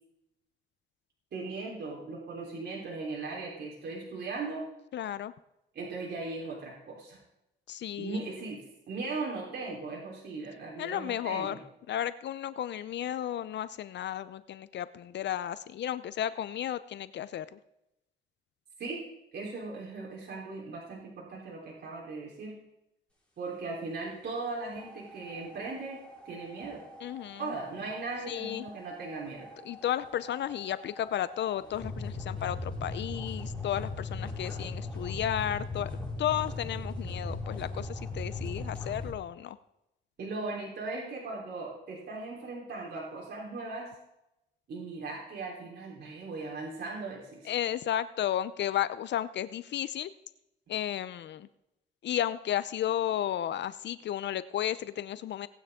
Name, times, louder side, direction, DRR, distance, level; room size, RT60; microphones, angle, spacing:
voice 1, 1.3-4.6 5.7-7.2 8.0-11.6 18.8-19.0 19.3-22.6 23.4-26.8 27.4-29.5 40.2-43.9 44.7-47.5, right 3 dB, 55° right, -3 dB, 3.7 m, -38 dB
voice 2, 4.9-5.3 7.7-8.2 10.8-11.6 11.9-17.6 27.0-27.5 28.3-28.7 29.6-35.9 36.2-39.6 47.4-50.1 50.7-51.5 52.0-55.5, left 11 dB, 65° left, 15 dB, 0.6 m, -33 dB
sound 1, 24.7-39.1, left 2 dB, 5° left, 5.3 m, -40 dB
18.0 x 9.4 x 3.7 m, 0.88 s
cardioid pair, 90°, 20 cm